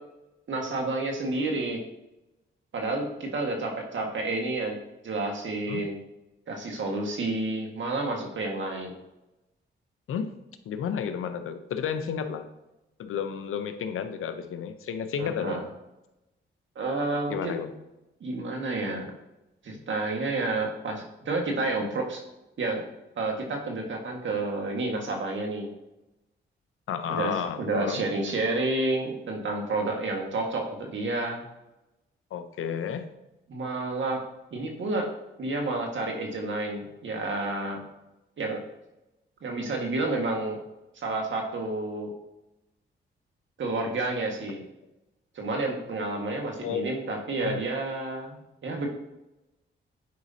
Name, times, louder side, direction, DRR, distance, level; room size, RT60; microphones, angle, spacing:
voice 1, 0.5-1.8 2.7-4.8 5.0-6.0 6.5-8.9 15.2-15.7 16.7-17.6 18.2-19.1 19.6-22.2 22.6-22.8 23.2-25.7 27.1-31.4 33.5-34.2 34.5-35.1 35.4-37.8 38.4-38.6 39.4-40.6 40.9-42.1 43.6-44.6 45.3-48.9, right 2 dB, 65° right, 1 dB, 1.7 m, -30 dB
voice 2, 10.7-12.5 13.0-15.6 17.3-17.7 26.9-28.0 32.3-33.1 46.6-46.8 47.4-47.6, left 7 dB, 80° left, 9 dB, 0.7 m, -31 dB
9.3 x 5.0 x 2.8 m, 0.96 s
cardioid pair, 60°, 21 cm